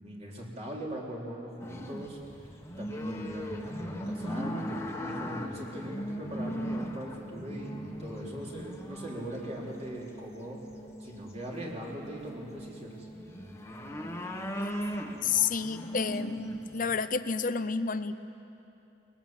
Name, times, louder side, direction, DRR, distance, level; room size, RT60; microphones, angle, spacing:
voice 1, 0.0-10.6 11.0-13.1, right 1 dB, 35° right, -3 dB, 3.9 m, -40 dB
sound 1, 1.6-9.8 10.9-11.5 11.8-17.0, equal, 15° left, 1.5 m, -38 dB
sound 2, 3.3-15.7, equal, 10° right, 4.0 m, -48 dB
voice 2, 15.2-16.4 16.7-18.1, left 6 dB, 45° left, 12 dB, 0.7 m, -29 dB
23.0 x 20.5 x 7.5 m, 2.8 s
head